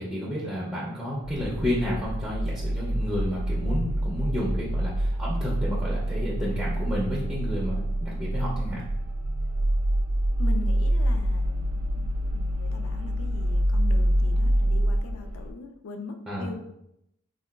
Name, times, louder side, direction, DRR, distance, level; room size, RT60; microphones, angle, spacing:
voice 1, 0.0-8.8 16.3-16.5, left 1 dB, 5° right, -8 dB, 0.4 m, -31 dB
sound 1, 1.2-15.5, right 1 dB, 75° right, 0.3 m, -26 dB
voice 2, 10.4-16.6, left 4 dB, 70° left, 5 dB, 0.3 m, -41 dB
3.8 x 2.2 x 2.2 m, 0.80 s
head